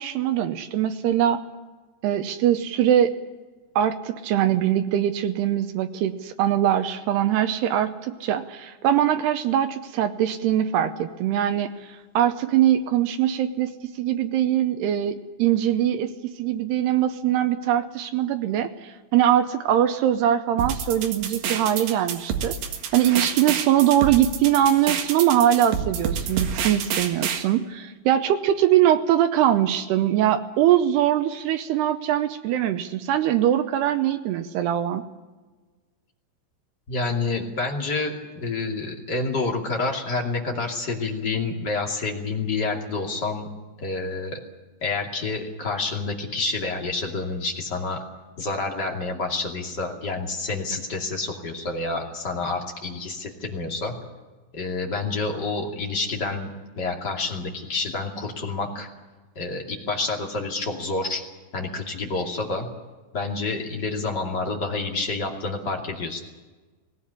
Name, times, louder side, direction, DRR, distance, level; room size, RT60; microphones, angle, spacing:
voice 1, 0.0-1.4 2.0-3.1 3.8-22.6 22.9-35.1, right 11 dB, 80° right, 8 dB, 2.4 m, -22 dB
sound 1, 20.6-27.4, right 7 dB, 65° right, 3.6 m, -28 dB
voice 2, 36.9-43.5 43.8-44.4 44.8-48.0 48.4-53.9 54.5-58.9 59.3-61.2 61.5-62.7 63.1-66.2, left 3 dB, 30° left, 1 dB, 2.0 m, -28 dB
19.0 x 18.0 x 10.0 m, 1.3 s
omnidirectional pair, 5.8 m